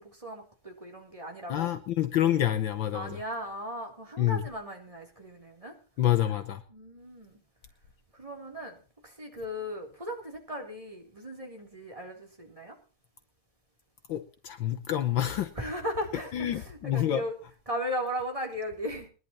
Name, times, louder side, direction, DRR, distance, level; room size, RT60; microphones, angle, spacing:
voice 1, 0.0-1.7 2.9-5.7 6.7-7.4 8.1-12.8 15.6-17.3 17.7-19.1, equal, 15° right, 3.5 m, -37 dB
voice 2, 1.5-3.2 4.2-4.4 6.0-6.6 14.1-15.5 16.3-17.2, left 12 dB, 65° left, 1.6 m, -27 dB
22.5 x 11.0 x 3.0 m
omnidirectional pair, 2.4 m